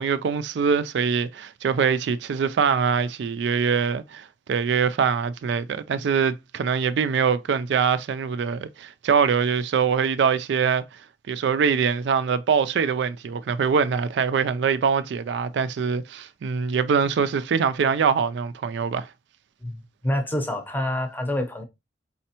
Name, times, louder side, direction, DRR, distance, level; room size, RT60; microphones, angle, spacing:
voice 1, 0.0-10.8 11.3-19.1, right 6 dB, 70° right, 0.3 m, -23 dB
voice 2, 19.6-21.6, left 1 dB, 10° left, 0.7 m, -27 dB
4.2 x 4.1 x 2.8 m
head